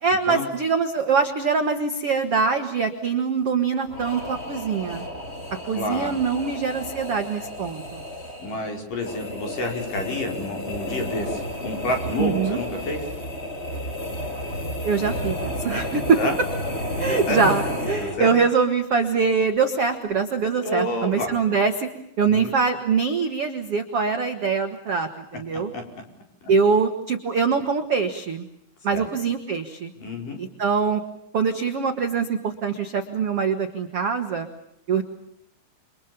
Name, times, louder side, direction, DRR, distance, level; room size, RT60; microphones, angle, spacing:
voice 1, 0.0-5.0 5.7-8.0 12.2-12.6 14.8-16.2 17.0-21.9 22.2-25.7 26.5-28.5 28.8-29.9 30.4-31.0 31.3-34.5 34.9-35.0, right 5 dB, 55° right, 6 dB, 1.6 m, -23 dB
sound 1, 3.9-18.4, left 1 dB, 15° left, 3.5 m, -32 dB
voice 2, 5.8-6.2 8.4-13.0 15.0-15.1 16.2-16.3 17.1-17.4 18.0-18.3 20.6-21.4 22.3-22.5 25.7-26.0 28.9-29.0 30.0-30.4, left 1 dB, 45° left, 3 dB, 6.3 m, -29 dB
29.5 x 25.5 x 7.0 m, 0.76 s
omnidirectional pair, 5.5 m